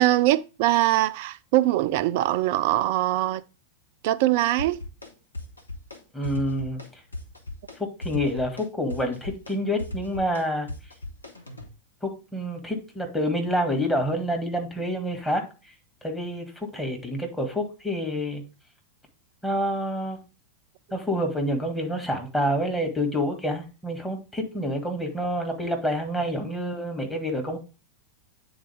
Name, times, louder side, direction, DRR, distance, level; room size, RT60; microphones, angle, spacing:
voice 1, 0.0-3.4 4.0-4.8, right 15 dB, 50° right, 0.4 m, -22 dB
sound 1, 4.6-5.1 5.3-6.0 6.2-6.9 7.1-11.7, left 2 dB, 80° left, 1.1 m, -37 dB
voice 2, 6.1-6.8 7.8-10.7 12.0-15.4 16.0-18.4 19.4-20.2 20.9-27.6, equal, 5° left, 1.7 m, -28 dB
8.7 x 4.0 x 3.4 m
figure-of-eight pair, 90°, 0 cm